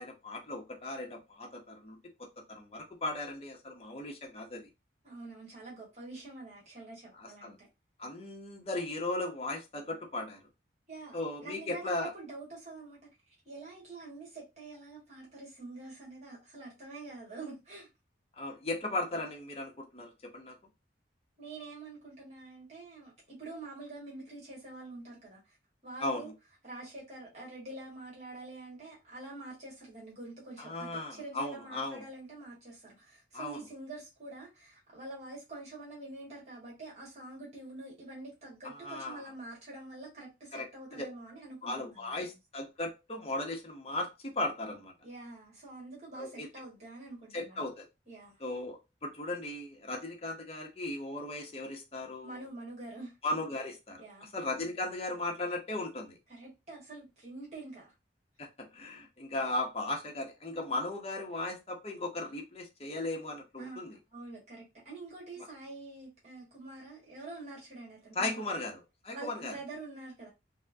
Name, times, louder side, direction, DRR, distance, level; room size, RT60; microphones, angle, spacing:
voice 1, 0.0-2.0 2.5-4.7 7.2-7.5 8.0-10.4 11.1-12.1 18.4-20.6 26.0-26.3 30.6-32.0 33.3-33.6 38.6-39.2 40.5-40.7 40.9-41.1 41.6-44.9 46.2-46.5 47.3-47.9 48.4-52.4 53.2-54.0 54.3-56.1 58.6-63.9 68.2-69.5, left 2 dB, 30° left, 0.7 m, -37 dB
voice 2, 5.0-7.7 10.9-13.0 13.4-17.9 21.4-25.6 25.8-26.3 26.6-42.2 45.0-47.6 48.1-48.4 52.2-53.1 54.0-54.3 56.3-57.9 59.4-59.6 63.6-68.4 69.1-70.3, right 2 dB, 35° right, 1.5 m, -46 dB
4.3 x 2.1 x 2.6 m
head